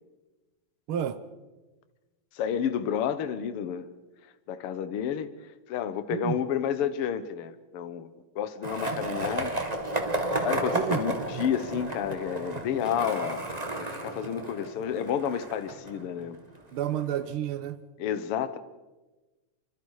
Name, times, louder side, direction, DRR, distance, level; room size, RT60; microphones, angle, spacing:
voice 1, 0.9-1.2 6.1-6.4 10.7-11.0 16.7-17.8, right 10 dB, 80° right, 11 dB, 1.2 m, -30 dB
voice 2, 2.3-3.9 4.5-8.1 8.3-9.6 10.2-16.4 18.0-18.6, left 8 dB, 60° left, 12 dB, 1.5 m, -31 dB
Skateboard, 8.6-16.6, right 1 dB, 20° right, 1.2 m, -32 dB
26.0 x 25.5 x 4.8 m, 1.2 s
omnidirectional pair, 3.8 m